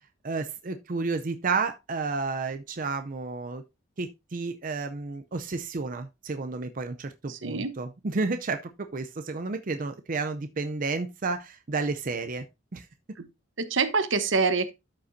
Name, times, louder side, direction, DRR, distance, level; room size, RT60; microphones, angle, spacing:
voice 1, 0.2-3.6 4.0-12.5 12.7-12.8, right 4 dB, 45° right, 0.6 m, -31 dB
voice 2, 7.3-7.7 13.2-13.3 13.6-14.7, right 4 dB, 80° right, 1.0 m, -26 dB
12.5 x 5.4 x 2.6 m
head